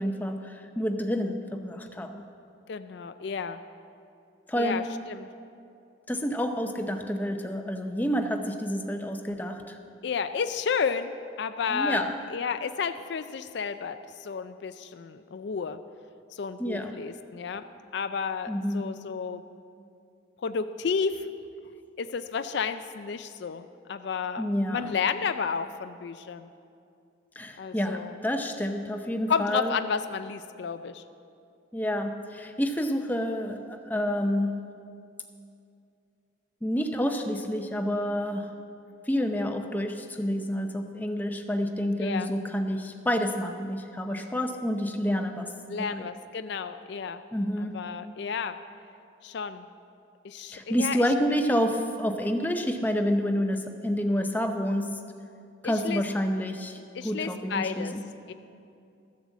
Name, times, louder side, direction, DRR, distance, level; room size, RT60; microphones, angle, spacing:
voice 1, 0.0-2.2 4.5-4.8 6.1-9.8 11.7-12.1 16.6-16.9 18.5-18.8 24.4-25.0 27.4-29.8 31.7-34.6 36.6-38.5 39.1-45.5 45.8-46.1 47.3-47.8 50.5-55.0 55.6-56.8 57.0-58.0, equal, 10° left, 4 dB, 0.6 m, -29 dB
voice 2, 2.7-3.6 4.6-5.3 10.0-15.8 16.3-17.7 17.9-19.4 20.4-21.3 22.0-26.5 27.6-28.1 29.3-31.0 42.0-42.3 45.7-47.2 47.6-48.6 49.2-49.7 50.2-51.0 55.6-56.0 56.9-57.9 58.3-58.4, left 6 dB, 60° left, 10 dB, 0.4 m, -32 dB
13.5 x 7.3 x 7.1 m, 2.5 s
head